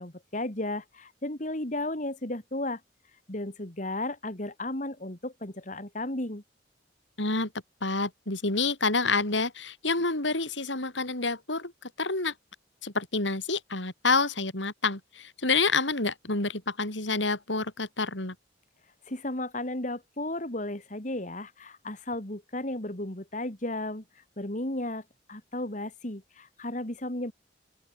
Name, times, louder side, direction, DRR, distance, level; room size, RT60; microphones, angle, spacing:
voice 1, 0.0-2.8 3.3-6.4 19.0-25.0 25.3-27.3, left 1 dB, 40° left, 2.9 m, -34 dB
voice 2, 7.2-7.5 7.8-12.3 12.8-18.4, left 3 dB, 85° left, 5.3 m, -28 dB
open air
head